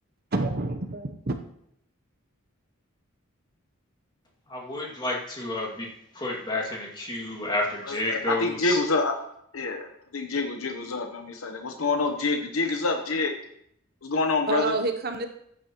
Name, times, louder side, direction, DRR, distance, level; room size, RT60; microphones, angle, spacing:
voice 1, 0.3-1.4 14.5-15.3, right 2 dB, 45° right, 6 dB, 0.8 m, -28 dB
voice 2, 4.5-8.8, left 1 dB, 20° left, -2 dB, 2.2 m, -31 dB
voice 3, 7.9-9.1 9.5-9.9 10.1-13.3 14.0-14.7, left 3 dB, 80° left, 4 dB, 1.0 m, -27 dB
15.0 x 9.3 x 3.0 m, 0.71 s
head